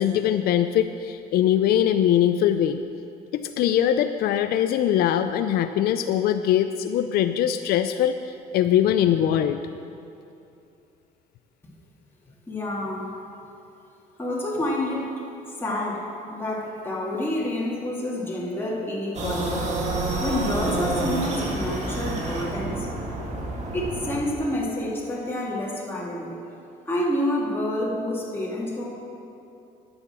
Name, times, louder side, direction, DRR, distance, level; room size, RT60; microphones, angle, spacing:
voice 1, 0.0-2.8 3.3-9.6, left 10 dB, 65° left, 9 dB, 0.4 m, -22 dB
voice 2, 12.5-13.1 14.2-15.1 15.6-22.9 23.7-26.4 26.9-28.9, left 1 dB, 15° left, -4 dB, 2.2 m, -28 dB
sound 1, 19.1-24.2, right 2 dB, 40° right, 2.1 m, -28 dB
10.5 x 7.0 x 7.3 m, 2.7 s
cardioid pair, 110°, 17 cm